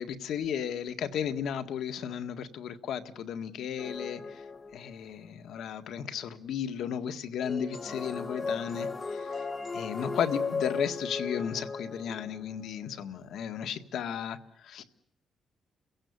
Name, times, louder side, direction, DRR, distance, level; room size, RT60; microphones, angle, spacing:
voice 1, 0.0-4.4 4.7-9.5 9.7-14.8, left 8 dB, 75° left, 1.8 m, -34 dB
sound 1, 3.8-5.1 7.4-12.7, left 4 dB, 25° left, 1.7 m, -36 dB
30.0 x 16.5 x 9.8 m
cardioid pair, 115°, 0 cm